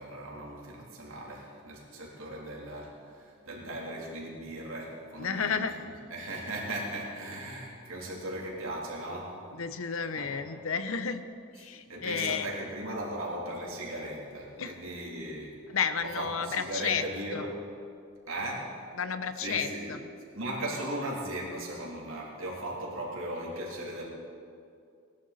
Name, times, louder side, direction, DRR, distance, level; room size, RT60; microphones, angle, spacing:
voice 1, 0.0-5.7 6.1-9.4 10.1-10.3 11.9-15.6 16.2-17.6 18.3-18.7 19.4-20.0 20.3-24.1, right 1 dB, 70° right, -3 dB, 3.2 m, -37 dB
voice 2, 5.2-5.8 9.5-11.2 11.5-12.5 14.6-14.8 15.7-17.0 17.3-17.4 19.0-20.0, left 6 dB, 70° left, 10 dB, 0.7 m, -32 dB
19.0 x 11.5 x 4.1 m, 2.4 s
head